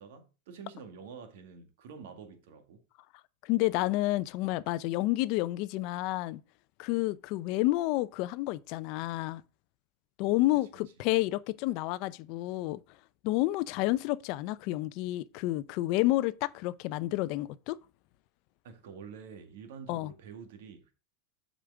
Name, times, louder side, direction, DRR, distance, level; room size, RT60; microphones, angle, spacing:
voice 1, 0.0-2.8 18.6-20.9, right 6 dB, 75° right, 1.9 m, -47 dB
voice 2, 3.4-6.4 6.8-9.4 10.2-12.8 13.2-17.8 19.9-20.1, left 18 dB, 50° left, 0.5 m, -30 dB
7.7 x 5.1 x 4.7 m
supercardioid pair, 135°, 0 cm